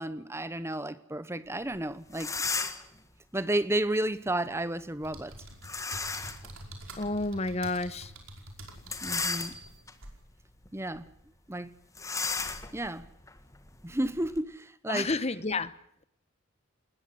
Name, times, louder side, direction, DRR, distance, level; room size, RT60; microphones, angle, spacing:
voice 1, 0.0-2.3 3.3-5.3 9.0-9.6 10.7-11.1 11.5-11.7 12.7-13.1 13.8-15.2, right 1 dB, 10° right, 0.9 m, -32 dB
sound 1, 1.7-1.8 2.1-3.0 5.6-6.5 7.0-7.1 8.8-9.9 10.5-10.7 10.9-11.1 11.9-14.4, left 4 dB, 15° left, 1.6 m, -34 dB
sound 2, 5.0-10.2, right 1 dB, 70° right, 5.2 m, -47 dB
voice 2, 7.0-8.1 14.9-15.7, left 3 dB, 30° left, 1.0 m, -30 dB
20.0 x 20.0 x 7.7 m
head